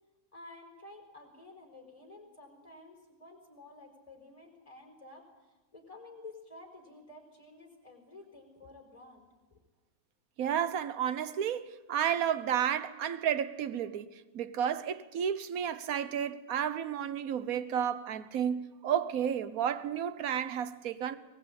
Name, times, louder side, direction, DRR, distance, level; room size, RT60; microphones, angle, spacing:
voice 1, 0.3-5.2 5.7-9.6, left 2 dB, 15° left, 5.3 m, -52 dB
voice 2, 10.4-21.2, right 9 dB, 55° right, 1.4 m, -32 dB
23.0 x 20.0 x 8.9 m
omnidirectional pair, 2.0 m